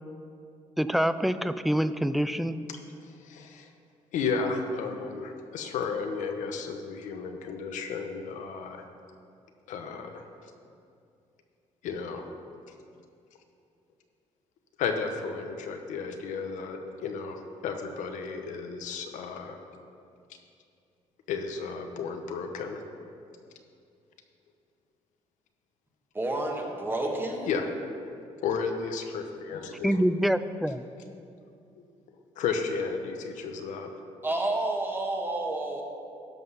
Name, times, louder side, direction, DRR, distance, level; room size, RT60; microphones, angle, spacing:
voice 1, 0.8-2.6 29.8-30.8, equal, ahead, 13 dB, 0.3 m, -26 dB
voice 2, 3.0-3.7 4.1-8.8 9.7-10.2 11.8-12.2 14.8-19.6 21.3-22.8 27.5-27.6 28.4-30.0 31.8-31.9 32.4-33.9, left 5 dB, 80° left, 5 dB, 1.0 m, -33 dB
voice 3, 26.1-27.5 34.2-35.8, right 2 dB, 15° right, 1 dB, 1.5 m, -30 dB
12.0 x 5.5 x 5.7 m, 2.5 s
cardioid pair, 105°, 13 cm